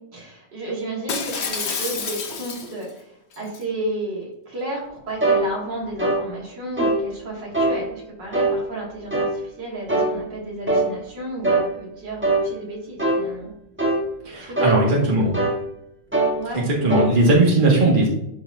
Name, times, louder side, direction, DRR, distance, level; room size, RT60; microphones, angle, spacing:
voice 1, 0.1-13.5 14.4-15.3 16.3-16.6, right 1 dB, 70° right, -3 dB, 2.8 m, -32 dB
Shatter, 1.1-2.9 3.3-3.6, left 5 dB, 45° left, 0.9 m, -29 dB
sound 1, 5.2-5.4 6.0-6.2 6.8-7.0 7.5-7.8 8.3-8.6 9.1-9.4 9.9-10.1 10.7-10.9 11.4-11.7 12.2-12.5 13.0-13.2 13.8-14.0 14.6-14.8 15.3-15.6 16.1-16.4 16.9-17.1, right 2 dB, 10° right, 1.0 m, -20 dB
voice 2, 14.2-15.3 16.5-18.1, right 2 dB, 25° right, -3 dB, 1.9 m, -18 dB
11.0 x 4.8 x 2.6 m, 0.81 s
omnidirectional pair, 2.0 m